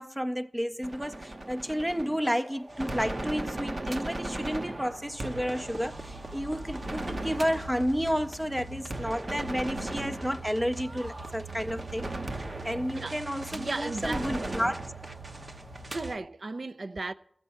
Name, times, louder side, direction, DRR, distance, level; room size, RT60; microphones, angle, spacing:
voice 1, 0.0-12.1 12.6-14.8, equal, 10° right, 0.4 m, -31 dB
sound 1, 0.8-16.2, right 2 dB, 50° right, 0.8 m, -37 dB
voice 2, 13.5-14.5 15.9-17.1, right 3 dB, 70° right, 0.4 m, -35 dB
15.0 x 5.3 x 8.2 m
wide cardioid pair, 70°, 0 cm